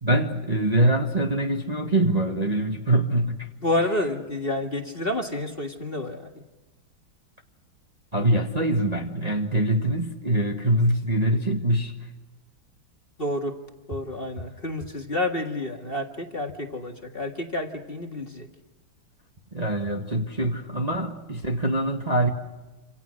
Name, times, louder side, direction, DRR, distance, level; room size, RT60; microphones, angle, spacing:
voice 1, 0.0-3.5 3.8-3.9 8.1-11.9 19.5-22.3, right 1 dB, 20° right, 2 dB, 1.5 m, -24 dB
voice 2, 3.6-6.3 13.2-13.6 13.9-18.5, left 1 dB, 30° left, 3 dB, 2.0 m, -29 dB
28.0 x 27.0 x 6.4 m, 1.1 s
omnidirectional pair, 2.2 m